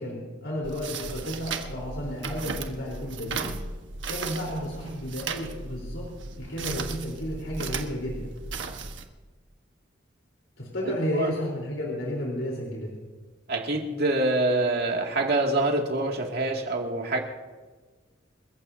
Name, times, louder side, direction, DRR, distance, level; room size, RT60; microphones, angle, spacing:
voice 1, 0.0-3.6 4.1-6.1 6.4-8.3 10.6-12.9, equal, 85° left, -3 dB, 3.9 m, -32 dB
sound 1, 0.6-9.1, right 4 dB, 75° right, 1.3 m, -36 dB
voice 2, 13.5-17.2, right 2 dB, 60° right, 1 dB, 2.4 m, -25 dB
29.0 x 15.0 x 2.8 m, 1.4 s
head